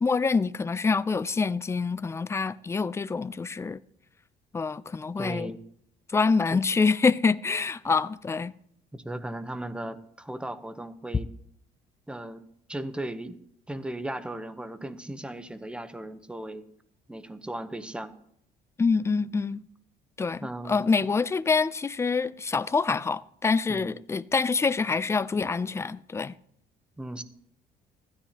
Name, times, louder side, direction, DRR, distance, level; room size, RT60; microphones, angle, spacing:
voice 1, 0.0-3.8 4.5-5.5 6.1-8.5 18.8-19.7 20.2-26.3, left 4 dB, 15° left, 0.3 m, -26 dB
voice 2, 5.2-5.6 6.5-6.6 8.9-11.3 12.1-12.4 12.7-13.4 13.7-16.6 17.1-18.1 20.4-20.9 23.7-24.0 27.0-27.2, right 1 dB, 5° right, 0.8 m, -36 dB
15.5 x 12.5 x 2.9 m
cardioid pair, 110°, 17 cm